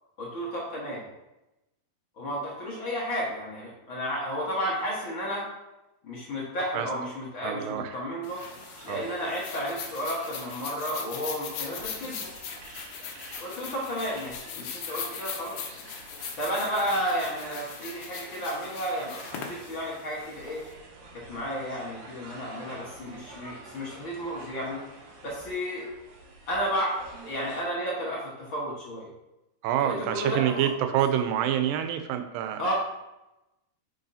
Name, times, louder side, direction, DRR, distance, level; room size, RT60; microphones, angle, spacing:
voice 1, 0.2-1.0 2.2-5.4 6.0-8.4 8.8-12.3 13.4-15.6 16.4-20.6 21.3-24.8 25.2-25.9 26.5-29.1 29.8-30.7 32.6-32.7, equal, 50° left, -5 dB, 1.6 m, -32 dB
voice 2, 7.4-8.0 8.9-9.0 29.6-32.7, right 10 dB, 80° right, 7 dB, 2.2 m, -27 dB
sound 1, 8.2-20.7, left 7 dB, 70° left, 2.0 m, -40 dB
sound 2, 8.2-27.6, right 2 dB, 65° right, 2.5 m, -48 dB
8.7 x 5.4 x 2.7 m, 0.95 s
omnidirectional pair, 4.0 m